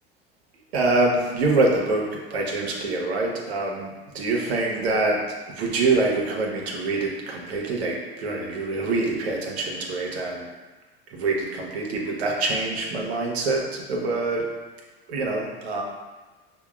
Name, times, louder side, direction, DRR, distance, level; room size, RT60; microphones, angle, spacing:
voice 1, 0.7-5.2 5.5-10.5 11.1-14.4 15.1-15.8, right 3 dB, 90° right, -1 dB, 0.8 m, -25 dB
6.1 x 2.2 x 2.3 m, 1.2 s
hypercardioid pair, 90°, 31 cm